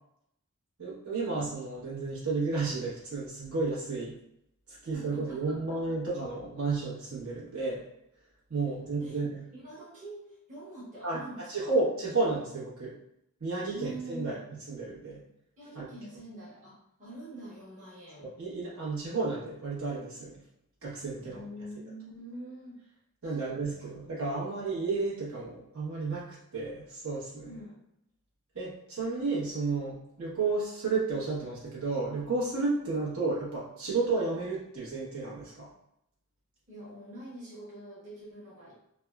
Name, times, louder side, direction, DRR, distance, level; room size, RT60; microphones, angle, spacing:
voice 1, 0.8-4.2 4.7-7.8 8.5-9.4 11.0-11.2 11.5-12.9 13.4-14.4 14.7-15.2 15.7-15.9 18.2-20.4 20.8-21.4 23.2-26.3 26.5-27.5 28.5-35.7, right 3 dB, 65° right, -8 dB, 1.1 m, -32 dB
voice 2, 4.8-5.6 5.9-6.0 9.0-9.2 9.5-11.7 13.7-14.4 15.6-18.3 21.1-22.8 23.2-23.9 27.4-27.8 36.7-38.7, right 1 dB, 35° right, -9 dB, 1.0 m, -45 dB
3.4 x 2.2 x 2.3 m, 0.78 s
head